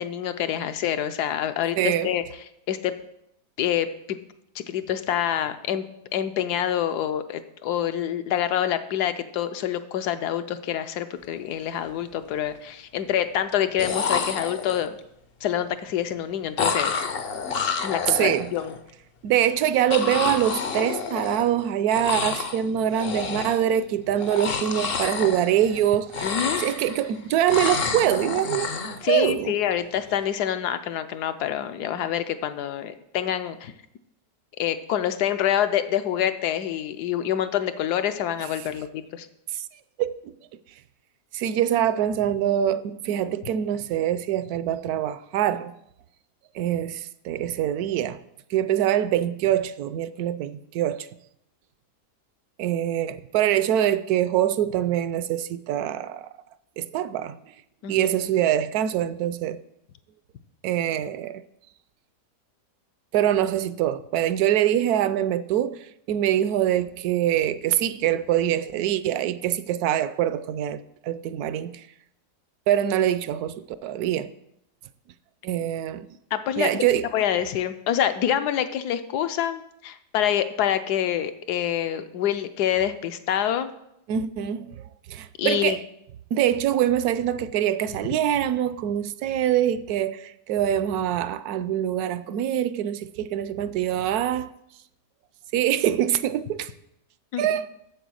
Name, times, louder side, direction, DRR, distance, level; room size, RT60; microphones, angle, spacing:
voice 1, 0.0-2.2 2.7-2.9 3.6-4.2 4.5-5.8 6.1-15.0 15.4-17.1 17.8-18.7 26.2-26.6 29.0-33.7 34.6-39.3 57.8-58.1 76.3-76.8 77.1-83.7 85.4-85.8 97.3-97.5, left 10 dB, 75° left, 1.2 m, -26 dB
voice 2, 1.8-2.1 18.1-18.5 19.2-26.3 26.6-28.7 29.0-29.5 39.5-39.7 40.0-40.3 41.3-45.7 46.5-48.2 48.5-51.1 52.6-56.3 56.8-57.4 57.9-59.6 60.6-61.4 63.1-71.8 72.7-74.3 75.4-76.1 76.6-77.1 84.1-84.8 85.1-85.9 86.3-94.5 95.5-96.7 97.4-97.7, right 11 dB, 75° right, 1.0 m, -24 dB
sound 1, 11.4-11.5 11.9-12.5 13.5-13.6 13.8-15.0 16.6-18.8 19.9-21.6 21.9-22.6 22.9-23.7 24.2-25.8 26.1-27.1 27.5-29.0, left 5 dB, 55° left, 0.7 m, -29 dB
8.1 x 7.5 x 6.3 m
omnidirectional pair, 1.8 m